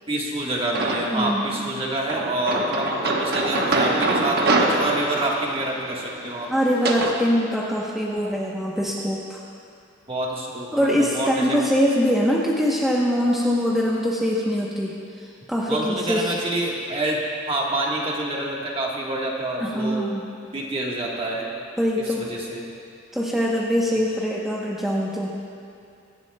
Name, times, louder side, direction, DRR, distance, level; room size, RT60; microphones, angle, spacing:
voice 1, 0.1-6.5 10.1-11.6 15.7-17.2 17.4-20.1 20.5-21.5 22.2-22.6, right 1 dB, 25° right, -2 dB, 1.4 m, -27 dB
sound 1, 0.8-1.4 2.1-7.2, right 2 dB, 50° right, 1.0 m, -24 dB
voice 2, 1.1-1.6 6.5-9.4 10.7-16.3 19.6-20.3 21.8-22.3 23.1-25.3, equal, ahead, -5 dB, 0.9 m, -23 dB
25.0 x 11.0 x 2.3 m, 2.5 s
head